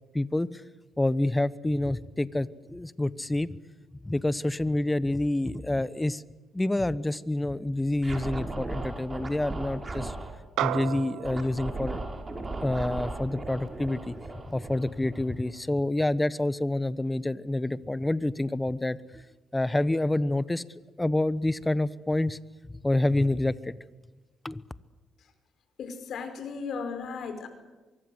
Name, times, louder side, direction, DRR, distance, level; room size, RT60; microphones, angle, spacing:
voice 1, 0.1-0.6 1.0-3.6 4.0-6.2 6.5-10.2 10.6-12.0 12.3-14.1 14.5-19.2 19.5-20.6 21.0-22.4 22.6-23.7 24.4-24.6, left 1 dB, 15° left, 16 dB, 1.1 m, -28 dB
Scratching (performance technique), 8.0-10.3 11.2-15.5, right 2 dB, 30° right, 5.6 m, -36 dB
sound 1, 10.6-15.2, right 12 dB, 90° right, 0.8 m, -37 dB
voice 2, 25.8-27.5, left 5 dB, 70° left, 8 dB, 5.2 m, -36 dB
24.0 x 23.5 x 8.0 m, 1.2 s
cardioid pair, 90°, 0 cm